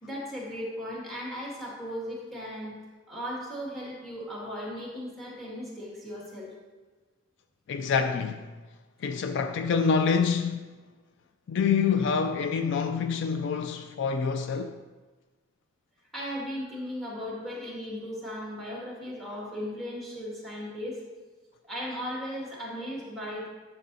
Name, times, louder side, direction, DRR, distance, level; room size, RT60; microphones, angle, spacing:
voice 1, 0.0-2.8 3.1-6.5 16.1-21.0 21.6-23.5, equal, ahead, 2.1 m, -37 dB
voice 2, 7.7-8.4 9.0-10.7 11.5-14.8, left 6 dB, 55° left, 0.3 m, -26 dB
11.5 x 6.5 x 2.7 m
head